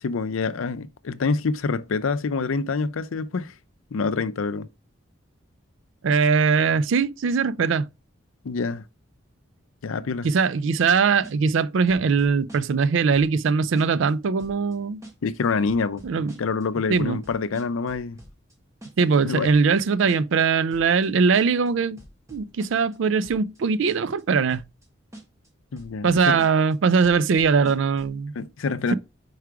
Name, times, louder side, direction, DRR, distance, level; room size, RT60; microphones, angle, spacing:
voice 1, 0.0-3.5 3.9-4.7 8.4-8.8 9.8-10.3 15.2-18.2 19.2-19.5 25.7-26.4 28.3-29.0, left 4 dB, 75° left, 0.5 m, -26 dB
voice 2, 6.0-7.9 10.2-15.0 16.0-16.3 16.9-17.2 19.0-22.0 22.3-24.6 26.0-28.3, right 5 dB, 65° right, 0.4 m, -21 dB
sound 1, 11.2-11.6 11.9-12.9 13.1-13.5 13.8-14.1 14.4-14.7 15.0-15.4 15.7-16.6 16.9-18.5 18.8-19.2 19.4-19.8 20.1-20.4 20.7-21.1 21.3-21.7 22.0-23.0 23.2-23.6 23.9-24.2 24.5-24.9 25.1-25.5 25.8-26.7 27.0-28.2, right 1 dB, 15° right, 1.4 m, -45 dB
4.7 x 4.7 x 4.7 m
head